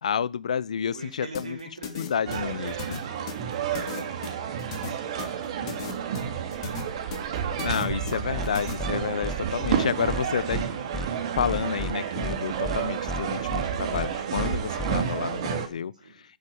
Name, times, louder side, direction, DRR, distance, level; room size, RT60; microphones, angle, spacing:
voice 1, 0.0-1.6 2.0-2.7 7.6-10.6 11.3-15.9, left 7 dB, 65° left, 1.0 m, -29 dB
voice 2, 0.9-5.8 15.9-16.2, right 3 dB, 85° right, 4.3 m, -45 dB
sound 1, 1.4-8.7, left 7 dB, 45° left, 3.2 m, -37 dB
sound 2, 2.3-15.7, right 8 dB, 45° right, 3.1 m, -30 dB
sound 3, 8.4-8.5 8.8-8.9 9.2-9.4 9.6-9.8 10.1-10.2 10.5-10.7 10.9-11.1 11.4-11.9 12.2-12.4 12.6-12.8 13.1-13.2 13.5-13.7 13.9-14.1 14.4-14.5 14.8-15.0, left 1 dB, 5° left, 1.0 m, -32 dB
10.5 x 8.5 x 8.3 m
hypercardioid pair, 135°, 4 cm